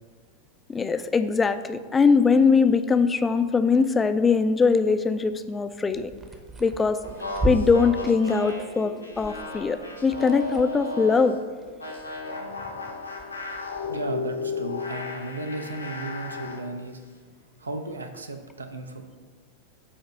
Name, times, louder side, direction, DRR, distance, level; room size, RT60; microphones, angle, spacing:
voice 1, 0.7-6.1 6.6-7.0 7.4-11.4, left 5 dB, 15° left, 10 dB, 0.4 m, -21 dB
sound 1, 5.6-12.6 12.9-13.9, equal, 20° right, 0.8 m, -36 dB
sound 2, 7.0-11.4 11.8-16.6, left 3 dB, 80° left, 0.9 m, -34 dB
voice 2, 13.9-17.0 17.6-19.2, right 3 dB, 75° right, 6 dB, 0.6 m, -35 dB
8.4 x 2.8 x 5.4 m, 1.5 s
figure-of-eight pair, 90°, 0 cm